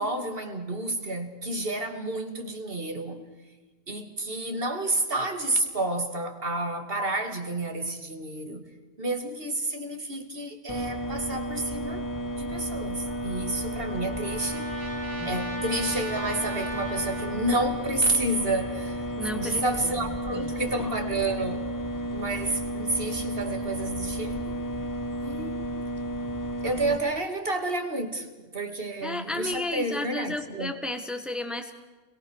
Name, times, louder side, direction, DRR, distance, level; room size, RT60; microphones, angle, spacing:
voice 1, 0.0-3.2 3.9-8.6 9.0-12.0 12.3-14.7 15.2-19.0 19.3-21.7 22.1-24.6 25.2-25.6 26.6-30.7, right 2 dB, 60° right, 5 dB, 2.6 m, -30 dB
sound 1, 10.7-27.0, equal, 20° left, 1.2 m, -32 dB
Trumpet, 13.1-17.9, right 1 dB, 25° right, 2.5 m, -39 dB
voice 2, 15.2-15.6 19.2-19.9 20.3-20.6 29.0-31.7, left 1 dB, ahead, 6 dB, 1.7 m, -33 dB
29.5 x 22.0 x 6.5 m, 1.2 s
omnidirectional pair, 1.1 m